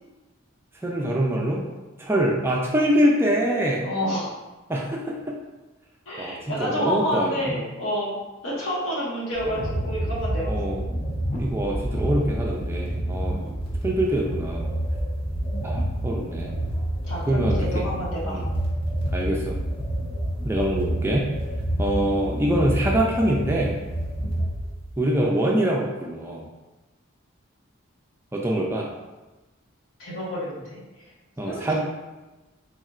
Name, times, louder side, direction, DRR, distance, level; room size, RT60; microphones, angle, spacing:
voice 1, 0.8-1.7 2.0-3.9 4.7-5.4 6.2-7.6 10.5-10.8 11.4-13.4 13.8-14.7 15.6-16.5 17.3-17.9 18.2-18.5 19.1-19.6 20.4-21.3 21.8-23.8 25.0-26.5 28.3-28.9 31.4-31.8, right 1 dB, 10° right, -2 dB, 0.3 m, -24 dB
voice 2, 3.8-4.3 6.1-10.5 13.3-13.5 17.1-18.4 21.7-21.8 30.0-30.8 31.5-31.8, equal, 70° left, -5 dB, 1.2 m, -29 dB
sound 1, 9.3-25.0, right 1 dB, 25° left, 0.7 m, -28 dB
4.2 x 3.5 x 2.4 m, 1.1 s
head